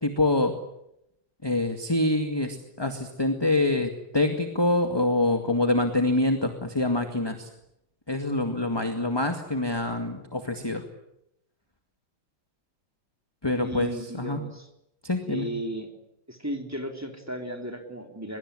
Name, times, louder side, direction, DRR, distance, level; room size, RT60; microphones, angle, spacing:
voice 1, 0.0-0.5 1.4-7.5 8.1-10.8 13.4-14.4 15.0-15.5, left 2 dB, 10° left, 6 dB, 2.0 m, -25 dB
voice 2, 13.6-14.7 15.3-15.9 16.3-18.4, equal, 5° right, 4 dB, 3.5 m, -35 dB
23.5 x 22.0 x 9.9 m, 0.80 s
omnidirectional pair, 2.3 m